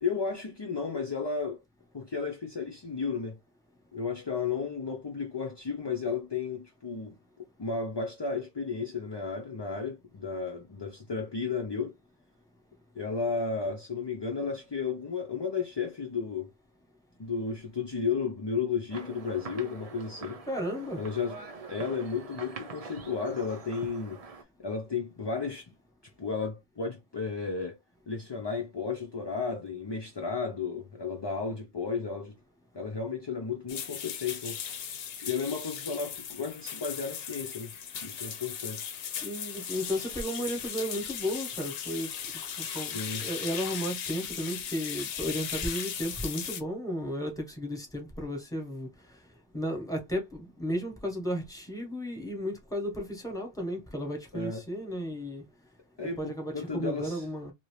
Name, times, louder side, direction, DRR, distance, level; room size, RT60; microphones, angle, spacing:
voice 1, 0.0-1.6 1.9-3.4 3.9-7.2 7.6-11.9 13.0-16.5 17.2-20.4 21.0-21.4 21.7-24.2 24.6-25.7 26.2-27.8 28.1-32.4 32.7-34.6 35.2-37.7 38.0-38.9 39.6-39.7 42.9-43.2 54.3-54.6 56.0-57.2, left 5 dB, 40° left, 0.4 m, -33 dB
sound 1, 18.9-24.4, right 4 dB, 45° right, 0.5 m, -44 dB
voice 2, 20.5-21.0 21.3-21.4 39.2-42.1 42.6-48.9 49.5-55.4 56.2-57.5, equal, 5° left, 1.0 m, -34 dB
sound 2, 33.7-46.6, left 8 dB, 70° left, 0.8 m, -37 dB
2.8 x 2.7 x 3.1 m
omnidirectional pair, 1.1 m